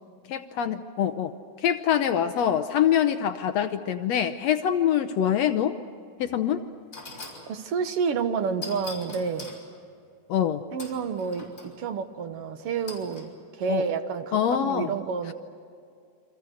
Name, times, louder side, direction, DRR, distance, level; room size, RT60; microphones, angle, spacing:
voice 1, 0.3-1.3 1.6-5.7 6.2-6.6 10.3-10.6 13.7-13.8 14.3-14.9, left 9 dB, 70° left, 9 dB, 1.7 m, -24 dB
sound 1, 6.2-6.3 6.9-7.5 8.6-9.6 10.8-11.7 12.9-13.3, left 4 dB, 25° left, 5.9 m, -41 dB
voice 2, 7.5-9.5 10.7-15.3, right 5 dB, 55° right, 8 dB, 1.9 m, -29 dB
29.0 x 25.5 x 6.4 m, 2.3 s
omnidirectional pair, 3.6 m